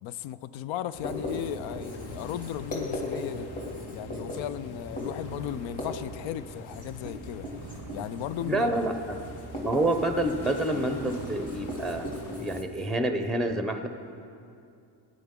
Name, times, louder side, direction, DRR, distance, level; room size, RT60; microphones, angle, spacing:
voice 1, 0.0-3.5 3.9-7.5 7.9-8.8, left 11 dB, 85° left, 15 dB, 0.5 m, -36 dB
sound 1, 0.9-12.6, left 4 dB, 60° left, 1.0 m, -47 dB
Writing, 1.0-12.6, left 1 dB, 20° left, 2.5 m, -38 dB
sound 2, 5.0-6.3 6.7-6.8 7.2-7.3 7.5-9.4 9.8-10.1 10.6-12.6, right 7 dB, 40° right, 0.5 m, -46 dB
voice 2, 8.4-9.2 9.6-12.1 12.4-13.9, right 1 dB, ahead, 6 dB, 0.7 m, -28 dB
16.5 x 9.7 x 3.7 m, 2.5 s
cardioid pair, 95°, 45 cm